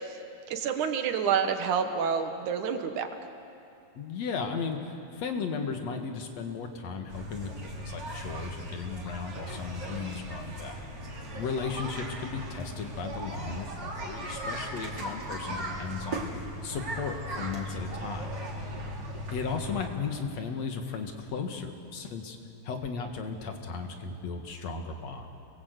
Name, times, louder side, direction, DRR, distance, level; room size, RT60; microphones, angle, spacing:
voice 1, 0.5-3.1, right 7 dB, 80° right, 6 dB, 2.9 m, -28 dB
voice 2, 3.9-10.8 11.4-16.3 16.6-18.3 19.3-22.4 22.6-25.3, left 5 dB, 60° left, 5 dB, 2.9 m, -35 dB
sound 1, 7.1-19.9, equal, 35° right, 3.5 m, -38 dB
28.0 x 21.5 x 8.2 m, 2.7 s
omnidirectional pair, 3.4 m